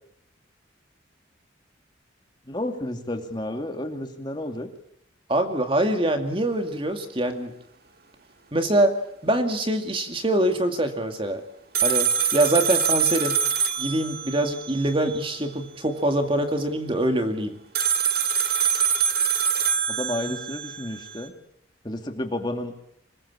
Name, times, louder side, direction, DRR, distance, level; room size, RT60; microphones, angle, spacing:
voice 1, 2.5-4.7 19.9-21.3 21.8-22.7, left 1 dB, 25° left, 5 dB, 2.5 m, -31 dB
voice 2, 5.3-7.5 8.5-8.9 9.2-11.4 11.8-13.4 13.8-17.6 20.3-20.4, right 1 dB, 25° right, 6 dB, 2.2 m, -24 dB
sound 1, 11.7-15.1 17.7-21.1, right 7 dB, 50° right, 1.9 m, -24 dB
25.5 x 21.5 x 8.6 m, 0.73 s
head